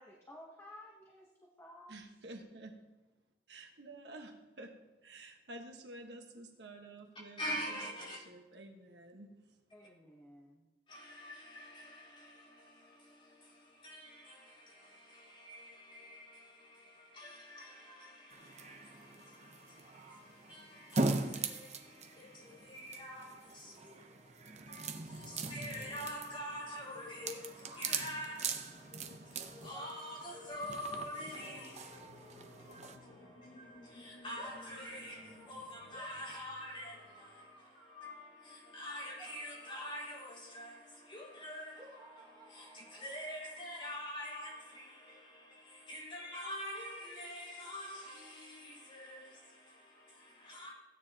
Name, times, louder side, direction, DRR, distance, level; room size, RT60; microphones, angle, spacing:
voice 1, 0.0-1.9 9.7-10.6, left 1 dB, 15° left, 1.1 m, -54 dB
voice 2, 1.9-2.7 3.5-4.8 5.0-9.6, right 2 dB, 75° right, 1.4 m, -51 dB
voice 3, 7.4-8.2 10.9-50.7, equal, 30° left, 4.2 m, -46 dB
sound 1, 18.3-33.0, right 3 dB, 40° right, 0.8 m, -41 dB
sound 2, 27.3-28.0 29.7-30.6 31.4-33.9 34.3-35.5 35.9-38.3 39.2-41.1 41.8-43.9, right 2 dB, 25° right, 1.4 m, -58 dB
sound 3, 31.0-37.1, left 1 dB, 70° left, 2.0 m, -58 dB
16.0 x 9.5 x 2.9 m
head